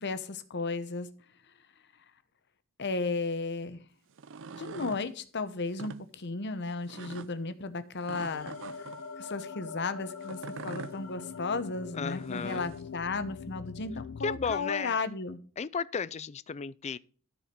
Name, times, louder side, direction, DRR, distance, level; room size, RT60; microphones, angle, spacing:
voice 1, 0.0-1.1 2.8-3.8 4.6-8.9 9.2-10.4 10.6-15.4, left 3 dB, 50° left, 1.0 m, -34 dB
sound 1, 4.1-5.0 5.7-6.0 6.9-7.3 8.1-9.0 10.2-10.9 12.1-12.8, right 4 dB, 60° right, 0.6 m, -43 dB
sound 2, 8.3-14.6, left 5 dB, 85° left, 0.6 m, -43 dB
voice 2, 11.9-12.7 14.2-15.0 15.6-17.0, left 5 dB, 30° left, 0.4 m, -34 dB
13.0 x 5.0 x 5.2 m
head